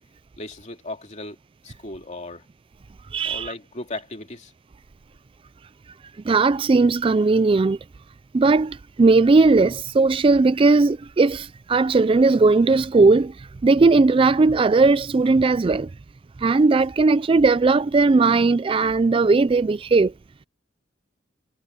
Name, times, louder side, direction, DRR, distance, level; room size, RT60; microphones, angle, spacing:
voice 1, 0.4-1.4 1.6-2.4 3.2-4.5, left 2 dB, 35° left, 2.6 m, -36 dB
voice 2, 3.1-3.5 6.2-7.8 8.3-15.9 16.4-20.1, right 3 dB, 25° right, 0.3 m, -18 dB
head